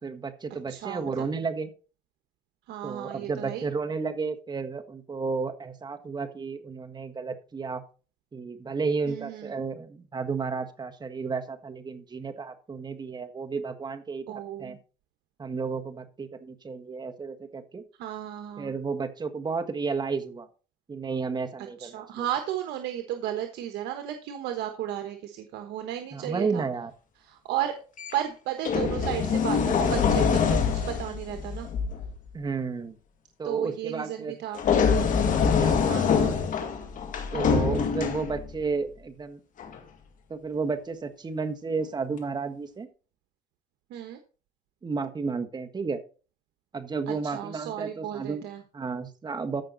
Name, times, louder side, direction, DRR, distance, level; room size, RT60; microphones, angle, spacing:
voice 1, 0.0-1.7 2.8-7.8 8.3-14.8 15.4-17.8 18.6-20.5 20.9-22.2 26.1-26.9 32.3-33.0 33.4-34.3 35.2-36.2 37.3-39.4 40.3-42.9 44.8-46.0 46.7-48.4 48.7-49.6, right 4 dB, 25° right, 6 dB, 1.5 m, -32 dB
voice 2, 0.7-1.0 2.7-3.6 9.0-9.5 14.3-14.8 18.0-18.7 21.8-26.6 27.2-27.7 28.1-31.7 33.4-34.6 35.8-36.3 37.3-37.6 43.9-44.2 47.1-48.6, right 11 dB, 85° right, 6 dB, 1.3 m, -34 dB
sound 1, 28.0-28.2 28.7-32.1 34.5-38.6 39.6-39.8, left 6 dB, 50° left, 2.3 m, -25 dB
14.5 x 5.7 x 4.0 m, 0.36 s
cardioid pair, 110°, 17 cm